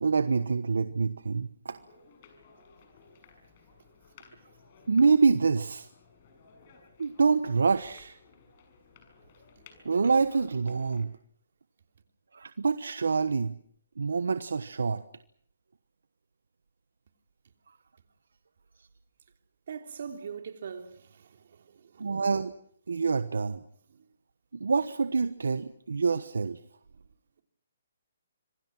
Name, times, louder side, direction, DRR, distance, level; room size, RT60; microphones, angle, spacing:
voice 1, 0.0-1.8 4.9-5.9 7.0-8.2 9.8-11.1 12.3-13.5 14.0-15.0 22.0-22.5 22.9-23.6 24.5-26.6, right 4 dB, 85° right, 1.2 m, -26 dB
sound 1, 1.7-11.0, left 5 dB, 40° left, 6.3 m, -58 dB
voice 2, 19.7-22.1 23.9-24.0, right 6 dB, 60° right, 3.2 m, -42 dB
26.5 x 23.0 x 6.2 m
hypercardioid pair, 155°, 0 cm